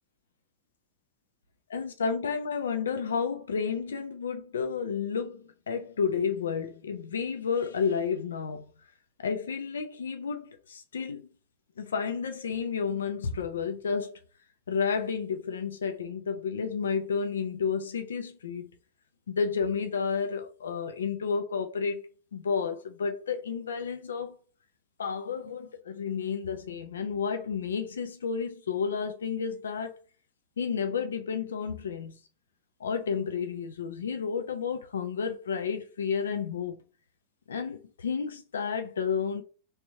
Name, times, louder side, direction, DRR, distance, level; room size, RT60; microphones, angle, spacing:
voice 1, 1.7-8.7 9.2-11.2 11.8-14.1 14.7-18.8 19.3-22.0 22.3-24.4 25.0-29.9 30.6-32.2 32.8-36.8 37.5-39.4, left 6 dB, 65° left, 0.4 m, -31 dB
3.1 x 3.0 x 2.7 m
figure-of-eight pair, 90°, 0 cm